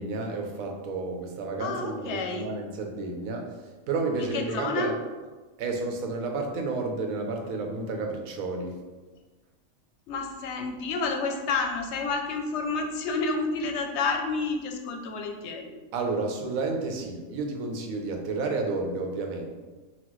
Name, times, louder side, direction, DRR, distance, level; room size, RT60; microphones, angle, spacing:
voice 1, 0.0-5.0 5.6-8.8 15.9-19.5, right 3 dB, 90° right, 2 dB, 1.1 m, -31 dB
voice 2, 1.6-2.5 4.2-4.9 10.1-15.7, left 4 dB, 65° left, 4 dB, 0.8 m, -30 dB
5.7 x 2.4 x 3.1 m, 1.3 s
omnidirectional pair, 1.4 m